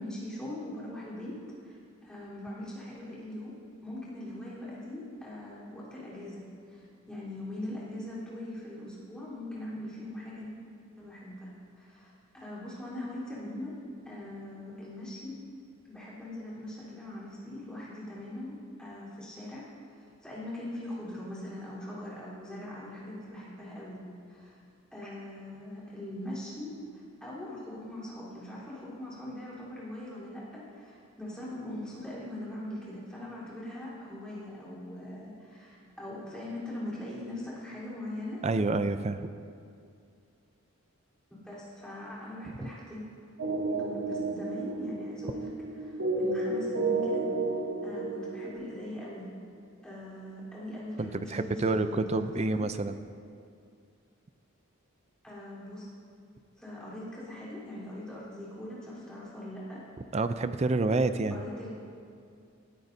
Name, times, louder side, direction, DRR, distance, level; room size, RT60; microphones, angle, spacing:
voice 1, 0.0-1.4 1.6-1.8 2.0-3.5 3.8-10.5 10.9-11.5 11.8-13.8 14.1-15.3 15.9-19.6 20.0-24.0 24.3-24.6 24.9-26.7 27.2-38.4 41.3-43.0 43.7-45.5 45.8-47.3 47.8-49.3 49.8-52.7 55.2-55.9 56.6-59.8 61.3-61.7, left 1 dB, 5° left, -9 dB, 3.7 m, -41 dB
voice 2, 38.4-39.3 51.0-53.0 60.1-61.4, right 3 dB, 30° right, 11 dB, 0.4 m, -28 dB
sound 1, 43.4-48.5, right 3 dB, 85° right, 2.3 m, -31 dB
18.5 x 13.0 x 2.7 m, 2.3 s
head